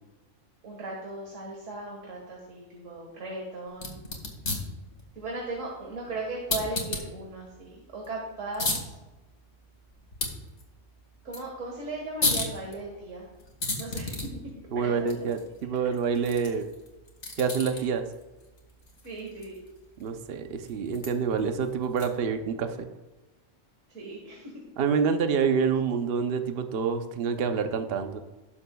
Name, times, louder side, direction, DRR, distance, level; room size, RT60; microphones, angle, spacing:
voice 1, 0.6-4.0 5.1-8.9 11.2-13.3 13.8-14.2 14.8-15.3 17.7-17.8 19.0-19.6 23.9-24.7, right 2 dB, 80° right, -1 dB, 1.9 m, -37 dB
sound 1, 3.7-22.4, left 2 dB, 60° left, 2.0 m, -37 dB
voice 2, 14.7-16.7 17.4-18.0 20.0-22.9 24.8-28.2, right 6 dB, 55° right, 7 dB, 0.9 m, -27 dB
18.0 x 6.8 x 2.3 m, 1.1 s
omnidirectional pair, 1.3 m